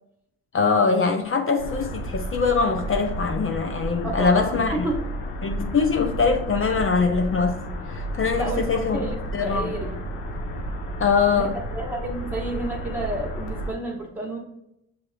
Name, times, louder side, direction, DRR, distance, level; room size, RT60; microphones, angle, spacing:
voice 1, 0.5-4.9 5.4-7.6 7.9-9.0 9.3-9.7 11.0-11.6, left 5 dB, 40° left, 0.5 m, -22 dB
sound 1, 1.6-13.7, right 1 dB, 90° left, 0.7 m, -32 dB
voice 2, 4.0-5.0 8.3-10.0 11.3-14.4, right 1 dB, 5° right, 1.0 m, -31 dB
6.1 x 2.5 x 3.3 m
supercardioid pair, 60°, 35 cm